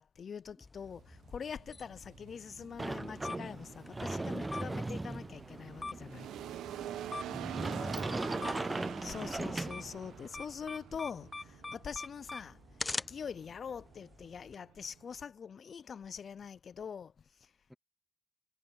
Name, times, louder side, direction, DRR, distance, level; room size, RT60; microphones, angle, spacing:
voice 1, 0.0-6.3 9.0-12.6 13.1-17.1, left 6 dB, 50° left, 0.6 m, -44 dB
sound 1, 0.6-14.5, left 3 dB, 20° left, 0.9 m, -46 dB
sound 2, 0.8-15.3, right 12 dB, 80° right, 1.1 m, -47 dB
Sliding door, 2.8-10.3, right 2 dB, 15° right, 0.4 m, -39 dB
voice 2, 7.7-9.3 17.7-17.8, equal, ahead, 2.1 m, -52 dB
cardioid pair, 90°, 0 cm